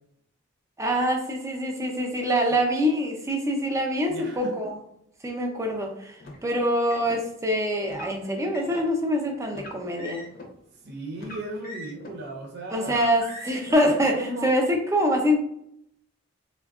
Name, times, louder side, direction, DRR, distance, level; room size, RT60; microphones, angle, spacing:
voice 1, 0.8-4.8 5.2-10.3 12.7-15.4, equal, 15° right, 2 dB, 0.4 m, -25 dB
voice 2, 4.1-4.5 10.8-13.0 14.2-14.5, right 1 dB, 55° right, 0 dB, 0.6 m, -36 dB
Car, 6.2-7.2 7.8-8.9 9.5-10.5 11.1-12.2 12.8-13.7, left 1 dB, 50° left, 0.6 m, -42 dB
3.4 x 2.2 x 2.3 m, 0.72 s
head